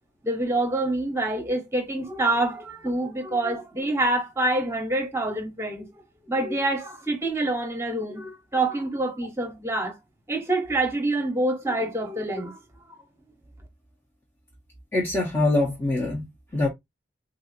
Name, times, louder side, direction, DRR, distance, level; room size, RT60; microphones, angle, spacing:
voice 1, 0.2-5.9 6.3-10.0 10.3-12.6, right 2 dB, 15° right, 1.0 m, -26 dB
voice 2, 14.9-16.7, left 2 dB, 15° left, 0.9 m, -24 dB
3.8 x 2.8 x 2.5 m
head